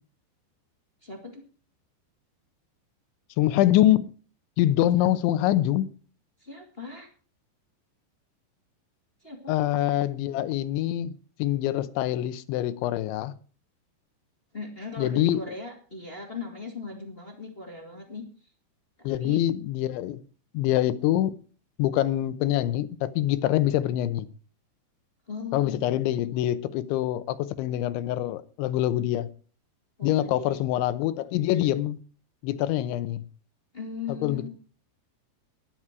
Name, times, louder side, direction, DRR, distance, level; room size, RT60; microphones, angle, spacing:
voice 1, 1.0-1.4 6.4-7.1 9.2-9.5 14.5-18.2 19.0-19.4 25.3-26.5 30.0-30.6 33.7-34.5, left 4 dB, 20° left, 1.5 m, -38 dB
voice 2, 3.4-4.1 4.6-5.9 9.5-11.1 11.4-13.3 15.0-15.4 19.0-20.2 20.5-21.3 21.8-24.3 25.5-29.3 30.0-32.0 32.4-33.2 34.1-34.5, left 13 dB, 90° left, 3.3 m, -25 dB
15.0 x 11.5 x 4.6 m
omnidirectional pair, 5.2 m